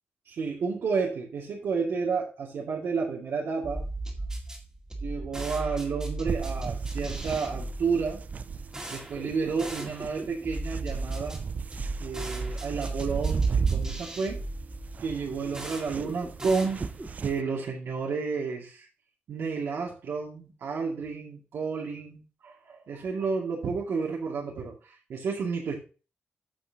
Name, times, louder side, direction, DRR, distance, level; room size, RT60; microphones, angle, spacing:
voice 1, 0.3-3.8 5.0-8.2 8.9-11.4 12.0-14.4 15.0-16.8 17.2-18.9 19.3-25.8, right 5 dB, 75° right, -2 dB, 2.3 m, -31 dB
sound 1, 3.6-17.2, right 2 dB, 15° right, 2.0 m, -37 dB
sound 2, 6.3-17.4, right 5 dB, 40° right, 0.4 m, -34 dB
14.0 x 5.8 x 2.9 m, 0.34 s
wide cardioid pair, 175°, 4 cm